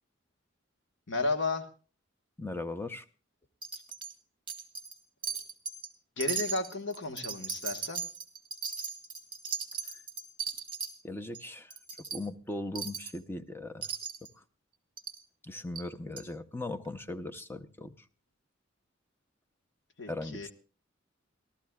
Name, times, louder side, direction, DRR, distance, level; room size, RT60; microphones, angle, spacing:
voice 1, 1.1-1.7 6.2-8.0 20.0-20.5, left 3 dB, 70° left, 7 dB, 1.4 m, -33 dB
voice 2, 2.4-3.0 9.9-10.0 11.0-11.7 12.1-13.9 14.3-14.4 15.4-18.0 20.1-20.5, left 2 dB, 10° left, 9 dB, 0.6 m, -39 dB
Wind chime, 3.6-4.1 4.5-5.0 5.2-5.9 6.2-10.9 11.3-11.4 11.7-12.2 12.8-13.2 13.8-14.3 15.0-15.2 15.8-15.9 16.2-16.3, right 7 dB, 25° right, 1.7 m, -37 dB
28.5 x 12.5 x 2.3 m, 0.36 s
head